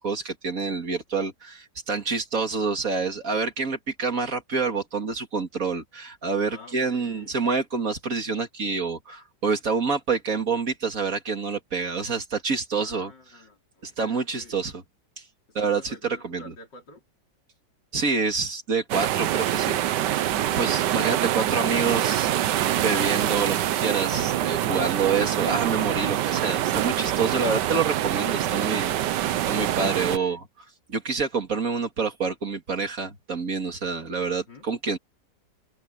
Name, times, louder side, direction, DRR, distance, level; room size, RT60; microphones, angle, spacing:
voice 1, 0.0-13.1 13.8-14.8 15.5-16.5 17.9-19.8 20.6-22.3 22.8-30.4 30.9-35.0, right 4 dB, 50° right, 2.8 m, -27 dB
voice 2, 6.5-7.4 12.7-14.6 15.6-17.0 20.3-21.2 30.1-30.4 34.3-34.6, left 2 dB, 85° left, 4.7 m, -48 dB
sound 1, 18.9-30.2, right 12 dB, 80° right, 1.4 m, -25 dB
omnidirectional pair, 1.9 m